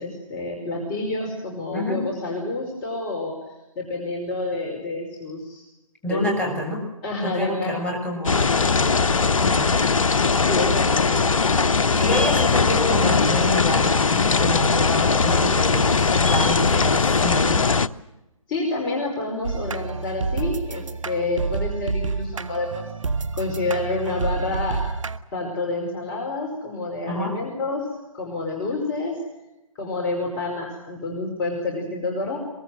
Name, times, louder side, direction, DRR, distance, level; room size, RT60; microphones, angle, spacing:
voice 1, 0.0-3.4 3.8-5.6 6.1-6.5 7.0-7.7 10.5-11.1 18.5-22.9 23.4-24.9 25.3-27.8 28.1-29.2 29.8-32.4, left 2 dB, 25° left, 1 dB, 5.3 m, -28 dB
voice 2, 1.7-2.0 6.0-6.8 7.2-8.4 9.4-9.7 12.0-17.6 27.1-27.4, left 1 dB, 5° left, -1 dB, 7.2 m, -27 dB
sound 1, 8.3-17.9, left 4 dB, 70° left, 1.0 m, -20 dB
sound 2, 19.4-25.2, right 4 dB, 65° right, 1.4 m, -28 dB
23.5 x 23.0 x 7.8 m, 0.96 s
figure-of-eight pair, 145°, 18 cm